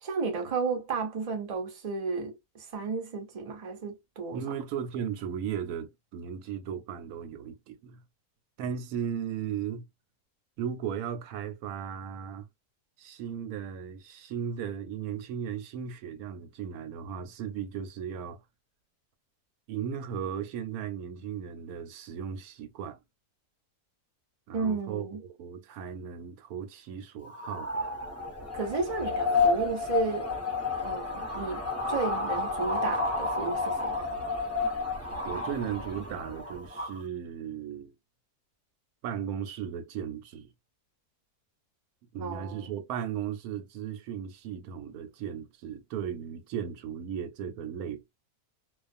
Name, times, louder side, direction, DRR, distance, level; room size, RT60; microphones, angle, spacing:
voice 1, 0.0-4.4 24.5-25.2 28.5-30.3 30.8-34.2 42.2-42.7, right 4 dB, 45° right, 0.5 m, -33 dB
voice 2, 4.3-8.0 8.6-9.8 10.6-12.5 13.0-18.4 19.7-23.0 24.5-25.1 25.4-27.9 35.2-37.9 39.0-40.5 42.1-48.0, right 8 dB, 75° right, 1.0 m, -36 dB
sound 1, 27.2-37.0, left 3 dB, 15° left, 0.7 m, -31 dB
2.4 x 2.3 x 2.5 m
omnidirectional pair, 1.7 m